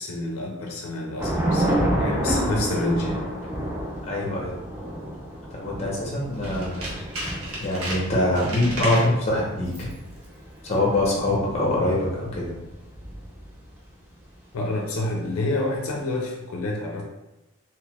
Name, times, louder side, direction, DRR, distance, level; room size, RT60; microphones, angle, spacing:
voice 1, 0.0-3.3 14.5-17.0, left 2 dB, 75° left, 0 dB, 0.5 m, -28 dB
Thunder / Rain, 1.2-13.7, right 1 dB, 10° right, 0.3 m, -30 dB
voice 2, 4.0-4.6 5.5-6.9 7.6-9.9 10.6-12.6, left 1 dB, 30° left, -4 dB, 0.8 m, -24 dB
Tools, 6.3-9.2 9.7-10.0 10.2-10.3, right 1 dB, 75° right, 0.8 m, -34 dB
2.9 x 2.4 x 3.2 m, 0.97 s
head